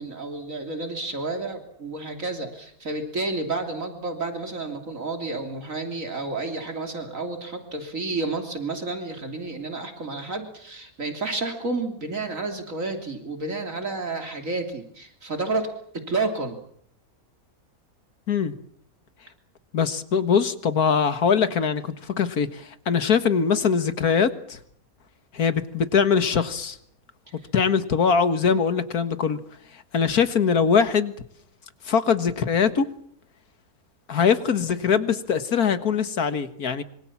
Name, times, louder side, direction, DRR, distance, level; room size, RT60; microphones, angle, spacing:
voice 1, 0.0-15.7 16.1-16.6, right 3 dB, 60° right, 5 dB, 3.5 m, -30 dB
voice 2, 19.7-24.6 25.3-26.8 27.5-29.4 29.9-31.1 31.9-32.9 34.1-36.8, left 6 dB, 85° left, 11 dB, 2.1 m, -22 dB
26.0 x 25.0 x 7.3 m, 0.64 s
omnidirectional pair, 1.5 m